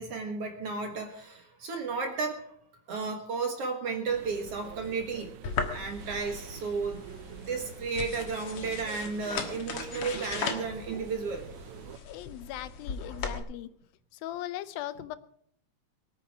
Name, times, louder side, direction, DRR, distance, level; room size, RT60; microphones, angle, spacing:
voice 1, 0.0-2.5 2.9-5.3 5.7-7.0 7.5-11.4, right 4 dB, 55° right, 4 dB, 2.0 m, -33 dB
sound 1, 4.1-12.0, right 10 dB, 80° right, 1.6 m, -46 dB
sound 2, 5.4-13.4, left 5 dB, 50° left, 1.9 m, -38 dB
voice 2, 12.1-13.7 14.1-15.2, left 14 dB, 85° left, 14 dB, 2.6 m, -39 dB
22.5 x 9.3 x 4.6 m, 0.70 s
omnidirectional pair, 4.1 m